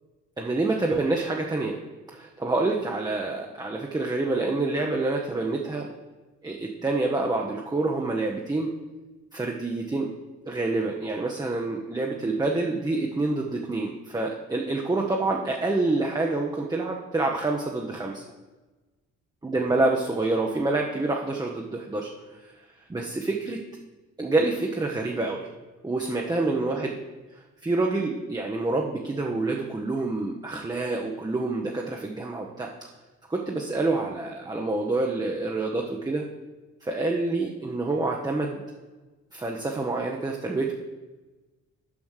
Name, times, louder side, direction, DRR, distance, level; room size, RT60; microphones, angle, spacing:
voice 1, 0.4-1.8 2.1-5.9 6.4-8.7 9.3-10.1 10.5-18.2 19.4-22.1 22.9-23.6 24.2-25.5 25.8-27.0 27.6-32.7 33.3-36.2 36.8-38.6 39.3-40.7, right 2 dB, 15° right, 0 dB, 0.9 m, -27 dB
7.2 x 5.2 x 6.4 m, 1.2 s
cardioid pair, 90°, 30 cm